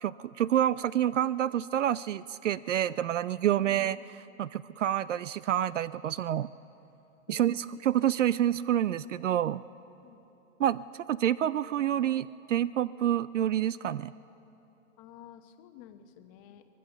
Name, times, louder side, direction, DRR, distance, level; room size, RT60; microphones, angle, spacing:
voice 1, 0.0-4.0 4.4-6.5 7.3-9.6 10.6-14.1, right 11 dB, 60° right, 19 dB, 0.5 m, -28 dB
voice 2, 3.6-4.0 7.3-7.6 10.0-10.2 15.0-16.7, left 10 dB, 25° left, 8 dB, 1.0 m, -51 dB
23.5 x 20.0 x 7.1 m, 2.9 s
hypercardioid pair, 150°, 41 cm